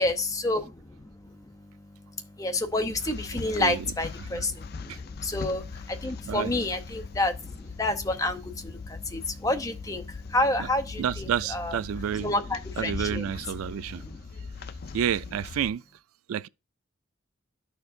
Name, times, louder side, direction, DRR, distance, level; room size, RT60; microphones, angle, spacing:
voice 1, 0.0-11.8 12.2-13.3 14.1-14.2, left 2 dB, 15° left, 0.7 m, -30 dB
sound 1, 2.6-15.7, left 4 dB, 45° left, 0.4 m, -40 dB
voice 2, 11.0-12.3 12.8-14.0 14.9-15.8 16.3-16.5, right 9 dB, 85° right, 0.3 m, -30 dB
12.0 x 4.5 x 2.6 m
head